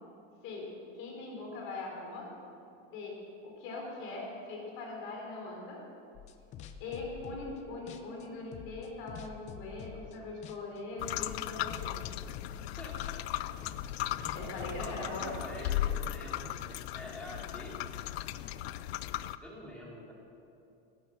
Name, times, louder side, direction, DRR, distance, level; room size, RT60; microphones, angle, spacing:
voice 1, 0.9-2.3 2.9-3.2 3.4-5.8 6.8-12.0 14.3-15.3, left 3 dB, 40° left, -1 dB, 4.3 m, -41 dB
sound 1, 6.1-7.6 7.9-10.2 10.4-10.8 11.1-14.9, left 8 dB, 25° left, 0.6 m, -47 dB
sound 2, 11.0-19.4, left 13 dB, 90° left, 0.7 m, -37 dB
voice 2, 12.6-13.5 14.1-16.6 16.9-17.8 19.4-20.1, equal, 5° left, -4 dB, 2.9 m, -46 dB
16.5 x 13.5 x 6.3 m, 2.6 s
supercardioid pair, 175°, 31 cm